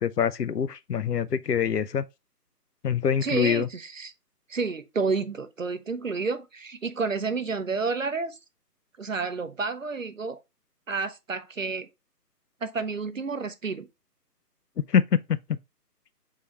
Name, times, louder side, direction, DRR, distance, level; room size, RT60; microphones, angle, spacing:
voice 1, 0.0-2.0 2.8-3.7 14.9-15.6, left 7 dB, 75° left, 0.6 m, -25 dB
voice 2, 3.2-4.1 4.5-8.4 9.0-10.4 10.9-11.9 12.6-13.9, right 4 dB, 55° right, 0.6 m, -30 dB
3.8 x 3.1 x 4.5 m
figure-of-eight pair, 155°, 48 cm